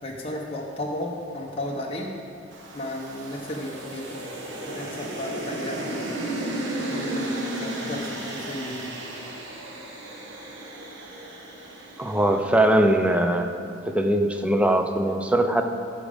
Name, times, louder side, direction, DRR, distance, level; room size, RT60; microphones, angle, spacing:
voice 1, 0.0-2.1 2.7-4.3 4.7-6.1 6.8-8.9, left 1 dB, 30° left, -2 dB, 0.9 m, -34 dB
sound 1, 2.5-12.9, right 1 dB, 70° right, 1.2 m, -34 dB
voice 2, 12.0-13.5 13.9-15.6, right 1 dB, 5° right, 5 dB, 0.5 m, -21 dB
14.0 x 5.0 x 5.0 m, 2.6 s
head